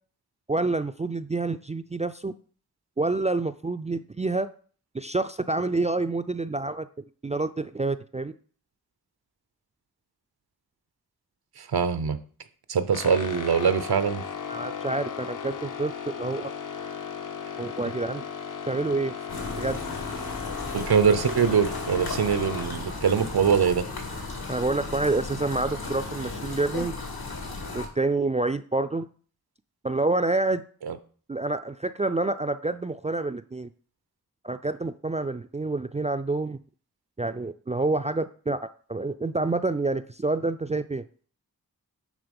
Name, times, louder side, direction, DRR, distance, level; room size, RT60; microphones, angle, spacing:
voice 1, 0.5-2.3 3.0-4.5 4.9-6.9 7.2-8.3 14.5-16.5 17.6-18.2 18.7-19.2 19.6-19.8 24.5-26.9 27.7-29.1 29.8-30.6 31.3-33.7 34.4-36.6 37.2-38.6 38.9-41.0, right 2 dB, 20° right, 0.3 m, -28 dB
voice 2, 11.6-12.2 12.7-14.2 20.7-23.9 30.9-31.0, right 6 dB, 85° right, 0.8 m, -23 dB
sound 1, 12.9-22.7, left 7 dB, 55° left, 0.8 m, -36 dB
sound 2, 19.3-27.9, left 3 dB, 75° left, 2.1 m, -35 dB
9.5 x 3.7 x 5.3 m
wide cardioid pair, 60°, 37 cm